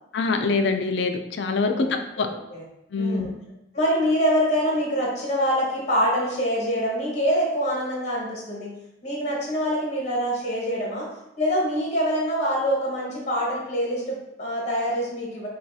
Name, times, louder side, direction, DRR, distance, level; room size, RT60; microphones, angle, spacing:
voice 1, 0.1-2.3 2.9-3.3, left 3 dB, 70° left, 6 dB, 0.4 m, -24 dB
voice 2, 1.6-2.6 3.0-3.3 3.7-8.7 9.0-11.1 11.4-15.5, equal, 40° left, -4 dB, 1.3 m, -25 dB
5.5 x 2.4 x 2.7 m, 0.87 s
head